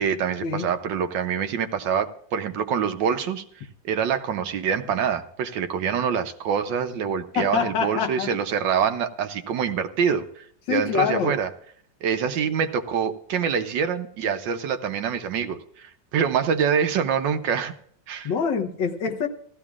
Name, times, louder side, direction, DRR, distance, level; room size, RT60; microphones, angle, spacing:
voice 1, 0.0-11.5 12.0-17.7 18.1-18.3, right 7 dB, 80° right, 8 dB, 1.5 m, -25 dB
voice 2, 7.4-8.3 10.7-11.3 18.2-19.3, left 6 dB, 85° left, 2 dB, 1.8 m, -25 dB
16.5 x 14.0 x 2.4 m, 0.63 s
omnidirectional pair, 2.0 m